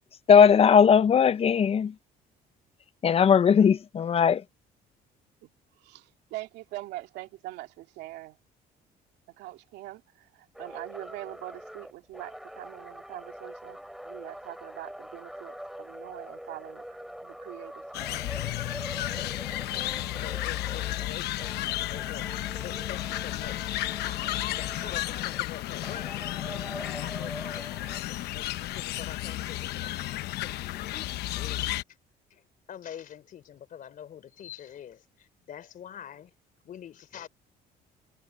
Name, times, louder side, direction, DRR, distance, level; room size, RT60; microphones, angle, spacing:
voice 1, 0.3-1.9 3.0-4.4, left 7 dB, 35° left, 0.6 m, -19 dB
voice 2, 5.8-8.4 9.4-16.8 17.2-17.8 18.1-18.6, right 17 dB, 90° right, 2.2 m, -43 dB
sound 1, 10.5-21.1 21.4-25.4 25.8-28.0, equal, ahead, 4.5 m, -44 dB
sound 2, 17.9-31.8, left 15 dB, 80° left, 0.9 m, -33 dB
voice 3, 19.1-31.1 31.3-31.7 32.3-36.3 36.6-37.3, left 9 dB, 55° left, 3.4 m, -45 dB
cardioid pair, 110°, 17 cm